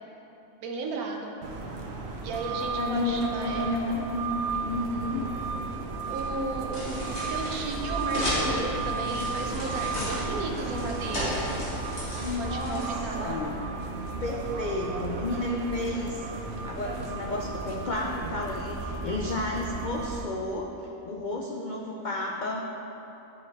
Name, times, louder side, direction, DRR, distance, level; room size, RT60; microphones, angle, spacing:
voice 1, 0.6-1.3 2.2-4.1 6.1-11.4 12.4-13.4, right 3 dB, 85° right, 2 dB, 1.3 m, -34 dB
sound 1, 1.4-20.2, right 4 dB, 55° right, 0.8 m, -34 dB
voice 2, 2.5-4.3 4.6-5.3 12.1-12.9 13.2-13.6 14.2-16.3 16.6-20.7 21.0-22.6, left 2 dB, 85° left, -1 dB, 0.4 m, -31 dB
sound 2, 5.4-13.4, equal, 45° left, 2.2 m, -35 dB
11.5 x 3.9 x 4.1 m, 3.0 s
omnidirectional pair, 1.5 m